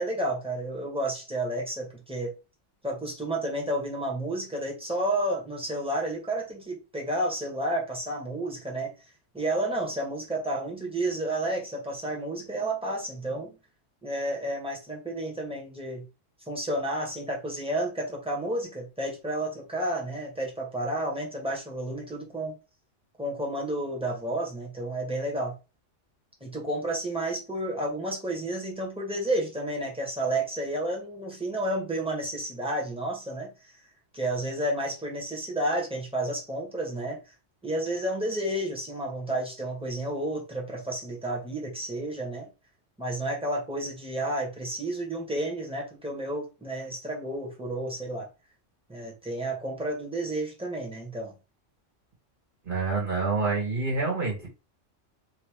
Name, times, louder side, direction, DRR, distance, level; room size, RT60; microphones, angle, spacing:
voice 1, 0.0-2.3 2.8-8.9 9.3-13.6 14.0-16.1 16.5-22.6 23.2-25.6 26.4-33.5 34.1-37.2 37.6-42.5 43.0-48.3 48.9-51.3, right 1 dB, 5° right, 1.7 m, -31 dB
voice 2, 52.7-54.5, right 3 dB, 45° right, 2.0 m, -27 dB
3.6 x 3.1 x 4.7 m
omnidirectional pair, 1.3 m